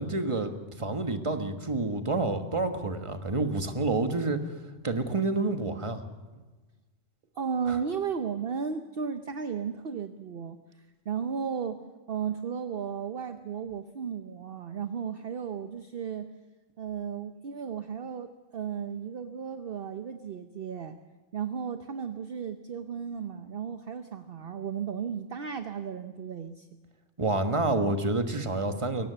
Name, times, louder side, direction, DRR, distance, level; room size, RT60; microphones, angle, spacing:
voice 1, 0.0-4.4 4.8-6.0 7.7-7.8 27.2-29.1, right 2 dB, 25° right, 7 dB, 1.4 m, -28 dB
voice 2, 7.4-10.6 11.1-16.3 16.8-21.0 21.3-26.7, right 7 dB, 50° right, 9 dB, 1.0 m, -34 dB
22.5 x 18.0 x 6.9 m, 1.3 s
omnidirectional pair, 1.3 m